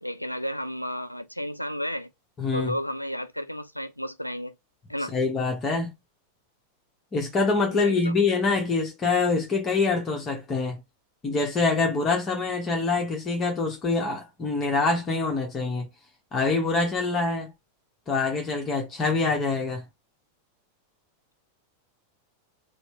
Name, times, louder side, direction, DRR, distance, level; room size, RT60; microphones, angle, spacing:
voice 1, 0.0-2.1 2.5-4.5 4.9-5.1 7.7-8.1, equal, 90° left, 0.5 m, -32 dB
voice 2, 2.4-2.7 5.1-5.9 7.1-10.8 11.2-15.9 16.3-17.5 18.1-19.8, left 3 dB, 25° left, 1.1 m, -25 dB
4.4 x 2.1 x 3.1 m
figure-of-eight pair, 90°, 0 cm